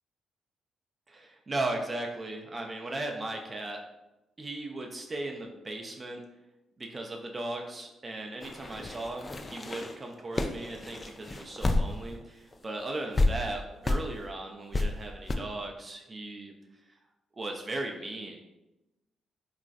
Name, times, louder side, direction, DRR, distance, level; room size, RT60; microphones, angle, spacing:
voice 1, 1.1-3.8 4.4-6.2 6.8-16.5 17.3-18.4, right 2 dB, 35° right, 2 dB, 0.4 m, -37 dB
sound 1, 8.4-12.2 12.5-12.6 13.2-13.3 13.8-14.0 14.7-14.9 15.3-15.4, left 2 dB, 30° left, 0.3 m, -29 dB
2.9 x 2.4 x 2.5 m, 0.97 s
supercardioid pair, 50°, 0 cm